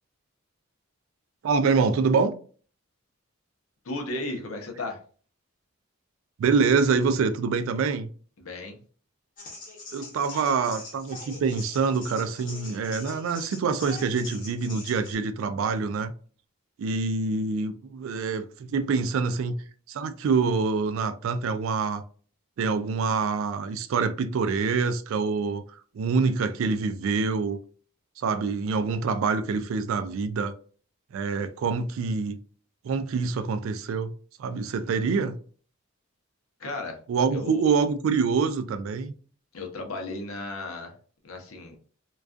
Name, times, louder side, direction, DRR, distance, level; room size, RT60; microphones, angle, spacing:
voice 1, 1.4-2.4 6.4-8.1 9.9-16.1 16.8-19.6 19.9-22.0 22.6-25.6 25.9-27.6 28.2-30.5 31.1-32.4 32.8-34.1 34.4-35.4 37.1-39.1, right 5 dB, 70° right, 0.3 m, -26 dB
voice 2, 3.8-5.0 8.4-8.8 36.6-37.0 37.3-37.6 39.5-40.9 41.2-41.8, left 2 dB, 85° left, 0.7 m, -34 dB
sound 1, 9.4-15.2, left 2 dB, 40° left, 0.7 m, -42 dB
2.3 x 2.3 x 2.4 m
head